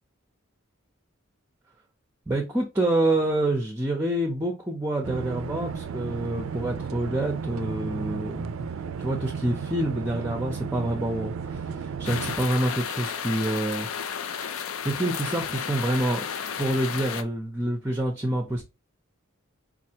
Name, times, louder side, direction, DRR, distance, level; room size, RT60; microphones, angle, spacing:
voice 1, 2.3-8.7 9.0-16.2 16.6-18.6, right 1 dB, 10° right, 0.5 m, -27 dB
sound 1, 5.0-12.4, right 6 dB, 75° right, 0.4 m, -34 dB
sound 2, 12.0-17.2, left 7 dB, 80° left, 0.4 m, -33 dB
4.4 x 2.5 x 2.8 m
head